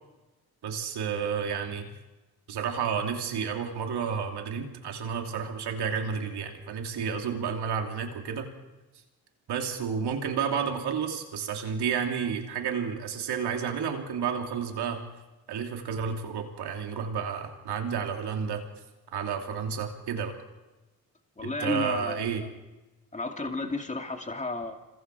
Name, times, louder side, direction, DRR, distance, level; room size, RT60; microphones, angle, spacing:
voice 1, 0.6-1.9 2.5-8.5 9.5-15.0 15.5-18.6 19.1-20.4 21.4-22.4, right 7 dB, 75° right, 3 dB, 3.1 m, -31 dB
voice 2, 21.4-22.5 23.1-24.8, left 2 dB, 20° left, 3 dB, 2.6 m, -32 dB
26.5 x 22.0 x 4.8 m, 1.1 s
supercardioid pair, 55°, 40 cm